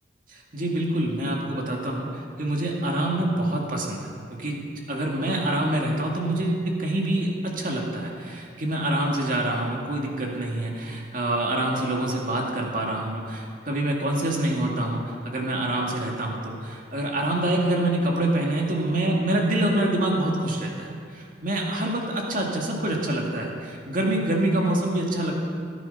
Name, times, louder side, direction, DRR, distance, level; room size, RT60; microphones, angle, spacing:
voice 1, 0.3-4.1 4.4-4.6 4.9-25.5, right 1 dB, 45° right, -1 dB, 2.2 m, -26 dB
18.0 x 9.6 x 5.6 m, 2.2 s
head